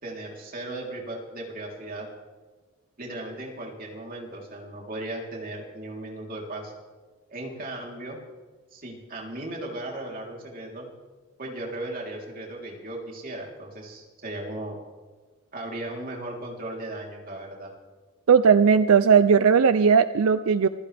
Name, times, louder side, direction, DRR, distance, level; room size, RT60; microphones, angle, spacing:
voice 1, 0.0-2.1 3.0-6.7 7.3-8.2 8.7-10.9 11.4-14.8 15.5-17.7, right 1 dB, 40° right, -1 dB, 3.6 m, -36 dB
voice 2, 18.3-20.7, right 6 dB, 80° right, 13 dB, 0.5 m, -17 dB
26.5 x 16.0 x 3.4 m, 1.4 s
head